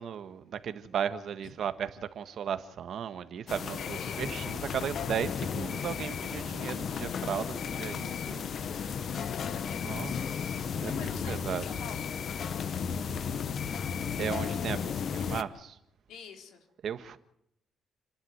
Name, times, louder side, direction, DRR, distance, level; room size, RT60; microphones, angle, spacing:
voice 1, 0.0-9.0 9.8-11.6 14.2-15.8 16.8-17.2, right 8 dB, 55° right, 1.6 m, -36 dB
sound 1, 3.5-15.4, left 7 dB, 50° left, 1.0 m, -34 dB
voice 2, 3.8-4.3 9.3-10.3 10.8-12.1 16.1-16.6, left 7 dB, 85° left, 4.1 m, -47 dB
29.5 x 11.5 x 9.6 m
cardioid pair, 130°, 0 cm